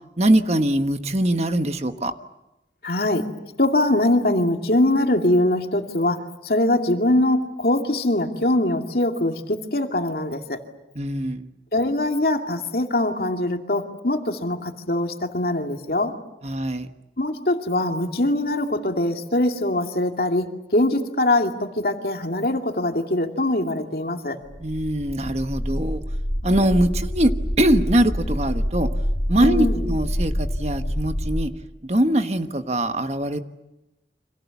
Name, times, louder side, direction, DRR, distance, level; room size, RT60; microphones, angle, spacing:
voice 1, 0.2-2.1 10.9-11.5 16.4-16.9 24.6-26.0 26.4-27.3 27.6-28.9 29.3-31.5 31.8-33.4, right 1 dB, 35° right, 8 dB, 1.3 m, -22 dB
voice 2, 2.8-3.3 3.6-10.6 11.7-16.1 17.2-24.4 29.4-29.9, left 1 dB, 60° left, 4 dB, 2.4 m, -22 dB
sound 1, 24.5-31.4, equal, 35° left, 2.9 m, -26 dB
29.5 x 26.5 x 7.2 m, 0.95 s
head